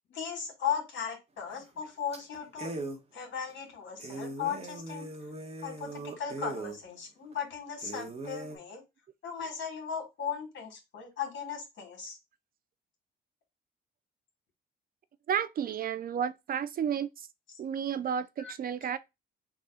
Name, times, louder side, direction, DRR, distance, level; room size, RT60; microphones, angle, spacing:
voice 1, 0.1-2.7 3.1-5.1 5.6-8.8 9.2-12.2 18.4-18.5, left 7 dB, 70° left, 1.9 m, -37 dB
sound 1, 1.5-1.8 2.1-2.2 2.6-3.0 3.5-3.6 4.0-6.8 7.3-7.4 7.8-8.6, right 2 dB, 30° right, 1.1 m, -40 dB
voice 2, 15.3-17.3 17.6-19.0, right 8 dB, 45° right, 0.4 m, -32 dB
3.7 x 2.3 x 4.0 m
cardioid pair, 90°, 20 cm